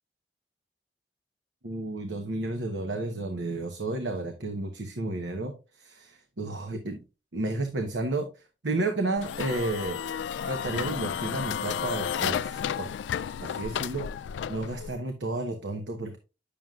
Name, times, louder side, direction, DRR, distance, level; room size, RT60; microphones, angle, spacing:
voice 1, 1.6-7.0 7.3-10.0 10.4-12.9 13.4-14.2 14.5-16.2, right 2 dB, 75° right, 4 dB, 1.0 m, -32 dB
sound 1, 9.2-15.0, left 8 dB, 85° left, 0.3 m, -32 dB
9.0 x 6.9 x 2.4 m, 0.30 s
head